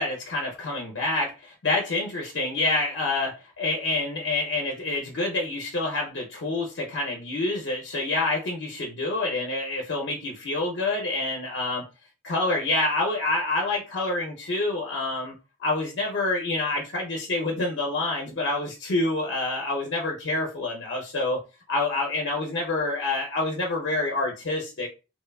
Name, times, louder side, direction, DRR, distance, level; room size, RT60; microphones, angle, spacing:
voice 1, 0.0-11.8 12.2-21.4 21.7-24.9, left 2 dB, 70° left, 0 dB, 0.6 m, -27 dB
3.0 x 2.2 x 2.3 m, 0.30 s
head